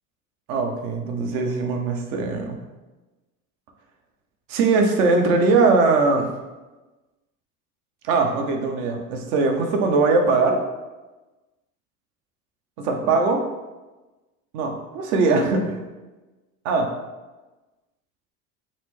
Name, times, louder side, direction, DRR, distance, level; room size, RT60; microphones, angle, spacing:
voice 1, 0.5-2.6 4.5-6.3 8.0-10.6 12.8-13.5 14.5-15.8 16.6-16.9, right 3 dB, 70° right, 3 dB, 0.7 m, -21 dB
4.0 x 2.1 x 3.1 m, 1.2 s
supercardioid pair, 90°, 41 cm